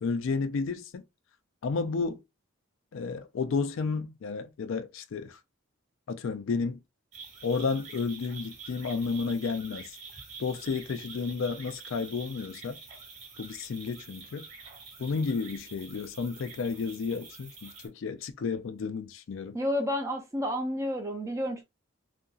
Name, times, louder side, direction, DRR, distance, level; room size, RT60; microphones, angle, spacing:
voice 1, 0.0-1.0 1.6-2.2 2.9-5.4 6.1-6.8 7.4-9.9 10.4-12.8 13.4-14.5 15.0-19.6, left 4 dB, 65° left, 0.3 m, -32 dB
sound 1, 7.1-17.9, right 4 dB, 30° right, 1.1 m, -47 dB
voice 2, 19.5-21.6, equal, 15° right, 0.4 m, -30 dB
2.7 x 2.6 x 2.3 m
head